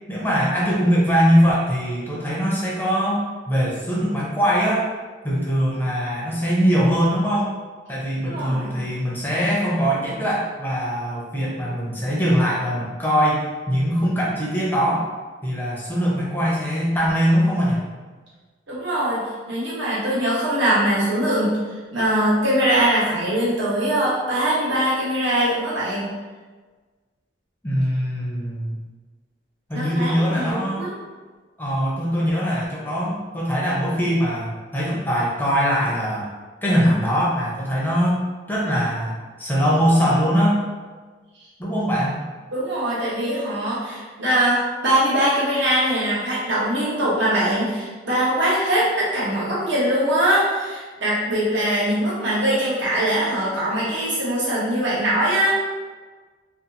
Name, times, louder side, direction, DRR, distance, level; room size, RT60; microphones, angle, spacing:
voice 1, 0.1-4.9 5.2-7.5 7.9-15.1 15.4-17.8 27.6-28.8 29.7-30.9 31.6-36.3 36.6-38.2 38.5-40.7 41.6-42.2, equal, 10° left, -5 dB, 0.5 m, -22 dB
voice 2, 8.2-8.8 18.7-19.2 19.5-21.6 21.9-26.0 29.7-30.9 42.5-55.6, right 1 dB, 80° right, -8 dB, 1.1 m, -22 dB
2.5 x 2.3 x 2.7 m, 1.4 s
head